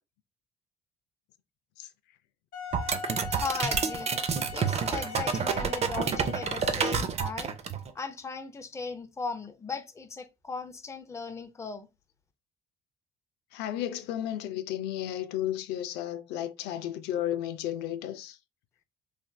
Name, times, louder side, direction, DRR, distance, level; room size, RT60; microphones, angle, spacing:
Wind instrument woodwind instrument, 2.5-7.0, left 4 dB, 60° left, 0.9 m, -40 dB
sound 1, 2.7-7.9, right 6 dB, 40° right, 0.5 m, -29 dB
voice 1, 3.3-4.1 4.5-7.5 7.9-11.9, left 4 dB, 15° left, 0.5 m, -37 dB
voice 2, 13.5-18.4, left 11 dB, 85° left, 0.4 m, -33 dB
3.2 x 2.6 x 2.2 m
cardioid pair, 110°, 17 cm